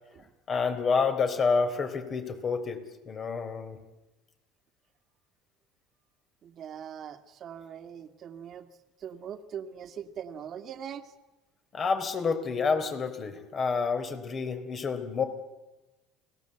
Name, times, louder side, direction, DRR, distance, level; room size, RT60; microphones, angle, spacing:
voice 1, 0.5-2.8 3.1-3.8 11.7-15.2, left 5 dB, 35° left, 7 dB, 4.2 m, -28 dB
voice 2, 6.4-8.7 9.0-11.1, right 8 dB, 45° right, 7 dB, 2.2 m, -41 dB
29.5 x 19.5 x 8.1 m, 1.1 s
supercardioid pair, 115°, 0 cm